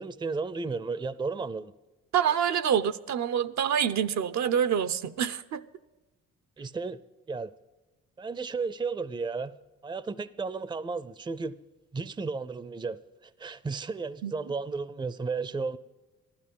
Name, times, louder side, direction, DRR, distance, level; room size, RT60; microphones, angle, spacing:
voice 1, 0.0-1.7 6.6-7.0 7.3-7.5 8.2-9.5 9.8-11.6 11.9-15.8, right 4 dB, 15° right, 0.5 m, -33 dB
voice 2, 2.1-5.6 14.2-14.3, right 8 dB, 70° right, 0.8 m, -26 dB
14.5 x 12.5 x 5.4 m
cardioid pair, 90°, 30 cm